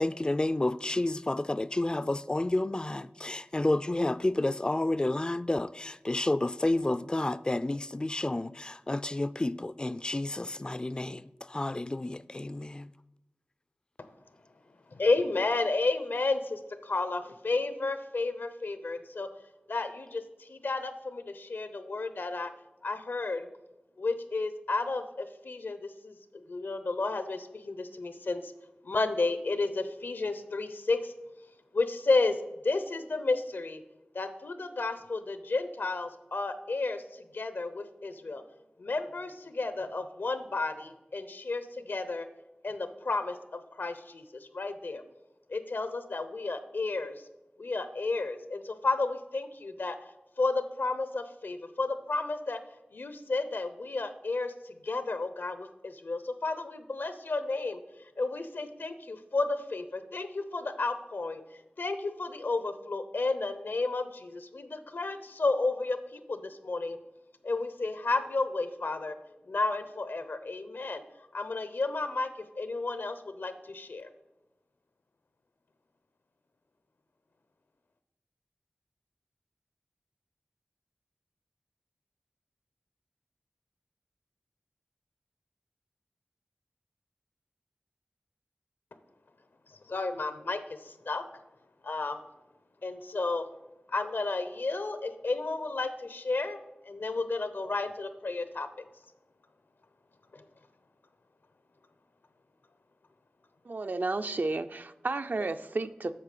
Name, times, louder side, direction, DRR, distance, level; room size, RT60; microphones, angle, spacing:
voice 1, 0.0-12.9, left 2 dB, 25° left, 0.3 m, -30 dB
voice 2, 14.9-19.3 19.7-22.5 22.8-23.5 24.0-28.5 28.8-31.1 31.7-32.4 32.6-33.8 34.1-38.4 38.8-42.3 42.6-45.0 45.5-47.2 47.6-50.0 50.4-52.6 52.9-57.8 58.2-61.4 61.8-67.0 67.4-69.2 69.5-71.0 71.3-72.3 72.6-74.1 89.7-91.2 91.8-92.3 92.8-93.5 93.9-96.6 96.8-98.7 100.3-100.4, left 3 dB, 80° left, 0.8 m, -32 dB
voice 3, 103.7-106.2, right 3 dB, 60° right, 0.5 m, -32 dB
8.6 x 6.1 x 6.7 m
wide cardioid pair, 50°, 3 cm